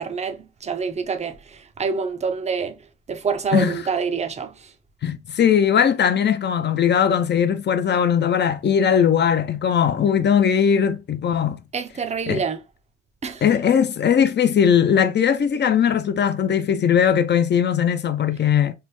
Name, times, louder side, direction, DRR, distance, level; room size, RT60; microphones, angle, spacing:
voice 1, 0.0-2.8 3.1-4.7 11.7-12.6 13.2-13.6, right 5 dB, 25° right, 0.5 m, -27 dB
voice 2, 5.0-11.6 12.3-12.4 13.4-18.7, left 8 dB, 35° left, 0.4 m, -19 dB
3.3 x 2.0 x 3.0 m
cardioid pair, 90°, 30 cm